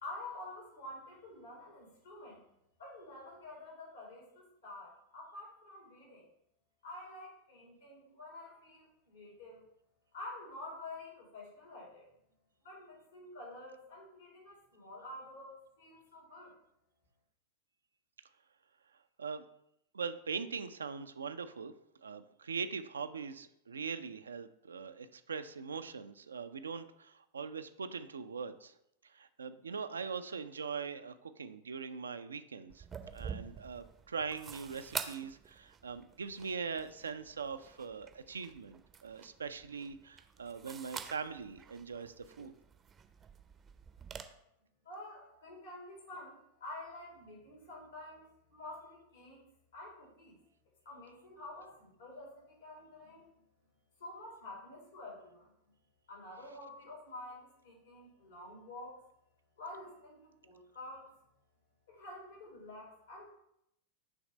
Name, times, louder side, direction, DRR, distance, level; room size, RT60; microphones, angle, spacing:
voice 1, 0.0-2.4 2.8-6.2 6.8-9.6 10.1-12.1 12.6-16.5 44.8-49.4 49.7-50.3 50.8-53.3 54.0-55.5 56.1-59.0 59.6-61.1 61.9-63.3, left 2 dB, 70° left, -3 dB, 2.2 m, -49 dB
voice 2, 19.9-21.7 22.0-28.7 29.0-32.8 33.1-42.5, right 5 dB, 70° right, 11 dB, 0.3 m, -41 dB
sound 1, 32.7-44.2, right 6 dB, 20° right, 0.5 m, -48 dB
6.0 x 3.2 x 5.2 m, 0.77 s
figure-of-eight pair, 90°, 0 cm